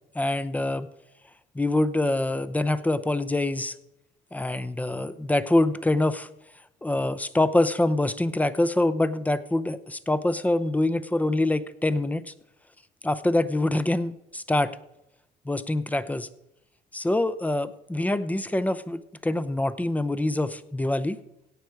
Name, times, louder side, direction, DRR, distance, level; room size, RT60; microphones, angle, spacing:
voice 1, 0.1-0.9 1.5-3.7 4.3-6.3 6.8-12.3 13.0-14.7 15.5-16.3 16.9-21.2, left 1 dB, 10° left, 14 dB, 0.7 m, -25 dB
17.0 x 6.4 x 4.7 m, 0.83 s
cardioid pair, 110°, 17 cm